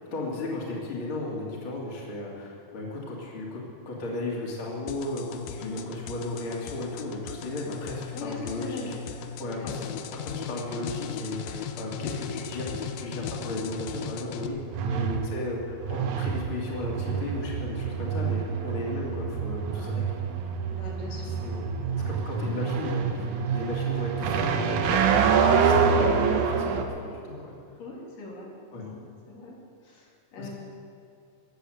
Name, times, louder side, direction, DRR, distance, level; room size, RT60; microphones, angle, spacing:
voice 1, 0.1-8.9 9.4-9.8 10.2-14.6 15.0-20.2 21.3-21.7 22.1-27.5 28.7-28.9 30.4-30.5, left 2 dB, 40° left, -3 dB, 3.0 m, -35 dB
sound 1, 4.9-14.5, left 7 dB, 90° left, 2.5 m, -37 dB
voice 2, 8.1-8.9 9.4-9.9 14.8-15.1 20.7-21.9 27.8-28.5 28.8-29.0 29.3-29.6 29.8-30.5, left 3 dB, 75° left, -4 dB, 4.4 m, -41 dB
sound 2, 11.8-26.8, right 6 dB, 70° right, 2.3 m, -27 dB
16.0 x 9.9 x 7.7 m, 2.5 s
omnidirectional pair, 3.9 m